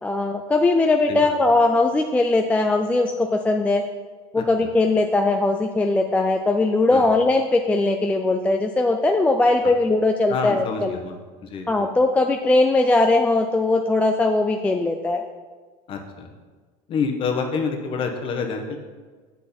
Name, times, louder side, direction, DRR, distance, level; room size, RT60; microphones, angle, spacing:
voice 1, 0.0-3.8 4.3-11.0 11.7-15.2, left 2 dB, 10° left, 4 dB, 0.3 m, -20 dB
voice 2, 4.4-4.7 6.9-7.0 10.3-11.2 11.4-11.9 15.9-16.3 16.9-18.8, left 5 dB, 35° left, 4 dB, 1.1 m, -28 dB
8.2 x 7.2 x 4.3 m, 1.4 s
cardioid pair, 155°, 15 cm